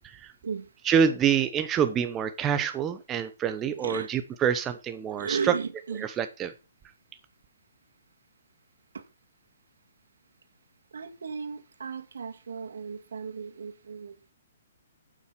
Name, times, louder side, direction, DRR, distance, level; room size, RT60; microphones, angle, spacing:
voice 1, 0.8-5.5 5.9-6.5, right 8 dB, 10° right, 0.9 m, -26 dB
voice 2, 3.7-4.1 5.2-6.1 10.9-14.2, right 5 dB, 90° right, 2.3 m, -35 dB
9.0 x 7.9 x 5.8 m
hypercardioid pair, 180°, 0 cm